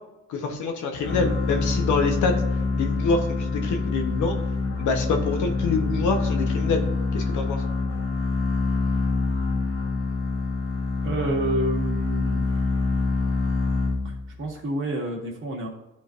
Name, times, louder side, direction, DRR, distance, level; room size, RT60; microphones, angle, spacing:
voice 1, 0.3-2.3 2.7-4.4 4.8-6.8 7.1-7.6, left 4 dB, 75° left, 4 dB, 1.0 m, -26 dB
sound 1, 1.0-14.4, left 3 dB, 45° left, 1.3 m, -26 dB
voice 2, 11.0-12.4 14.0-15.7, right 1 dB, 40° right, -1 dB, 1.8 m, -29 dB
11.0 x 3.8 x 2.5 m, 0.99 s
cardioid pair, 90°, 30 cm